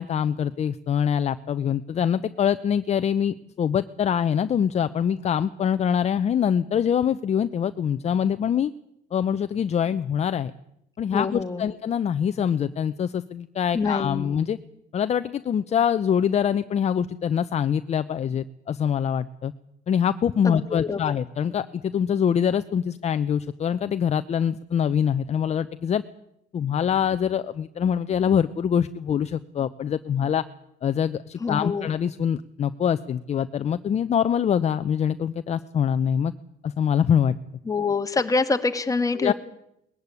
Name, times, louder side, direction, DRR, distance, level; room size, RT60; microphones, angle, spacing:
voice 1, 0.0-8.7 9.1-10.5 11.0-14.6 14.9-19.5 19.9-26.0 26.5-30.4 30.8-36.3 36.6-37.3 39.2-39.3, left 8 dB, 40° left, 11 dB, 0.7 m, -24 dB
voice 2, 11.1-11.7 13.7-14.3 20.5-21.0 31.4-31.9 37.7-39.3, left 4 dB, 20° left, 8 dB, 1.7 m, -25 dB
20.0 x 15.0 x 9.7 m, 0.81 s
cardioid pair, 110°, 17 cm